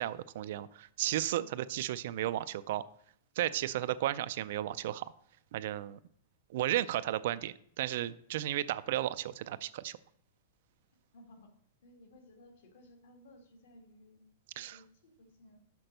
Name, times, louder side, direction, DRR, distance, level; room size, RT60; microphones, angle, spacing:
voice 1, 0.0-2.8 3.4-5.1 5.5-6.0 6.5-10.0 14.6-14.8, right 13 dB, 50° right, 15 dB, 0.3 m, -34 dB
voice 2, 11.1-11.5 11.8-14.2 14.6-15.6, left 1 dB, 65° left, 4 dB, 1.9 m, -58 dB
5.9 x 5.2 x 6.6 m, 0.64 s
supercardioid pair, 170°, 0 cm